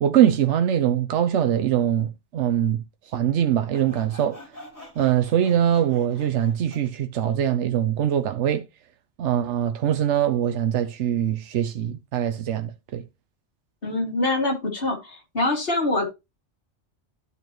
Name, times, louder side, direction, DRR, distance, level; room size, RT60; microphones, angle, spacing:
voice 1, 0.0-2.8 3.1-4.4 5.0-8.6 9.2-13.0, right 10 dB, 85° right, 1.0 m, -22 dB
Sawing, 3.7-6.9, left 1 dB, 15° left, 3.6 m, -46 dB
voice 2, 13.8-16.1, left 2 dB, 55° left, 2.5 m, -24 dB
12.5 x 5.5 x 3.0 m
omnidirectional pair, 1.2 m